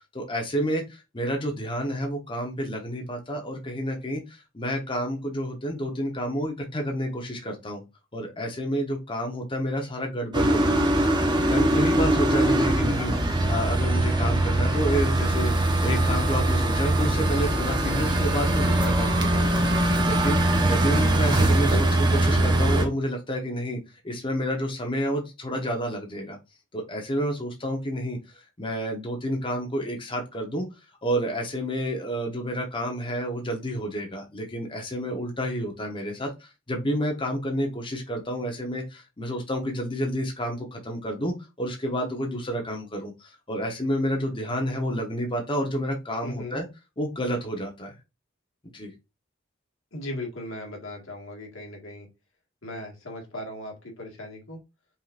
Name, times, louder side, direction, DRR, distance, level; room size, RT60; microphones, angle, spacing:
voice 1, 0.1-7.8 8.1-19.5 20.0-20.4 20.7-23.8 24.0-26.4 26.7-30.7 31.0-46.6 47.0-47.9 48.7-48.9, equal, 25° left, 2 dB, 1.1 m, -30 dB
sound 1, 10.3-22.9, right 1 dB, 20° right, 0.9 m, -22 dB
voice 2, 21.4-21.7 46.2-46.6 49.9-52.1 52.6-54.6, left 1 dB, 75° left, 1 dB, 1.8 m, -37 dB
5.6 x 3.8 x 2.5 m, 0.25 s
head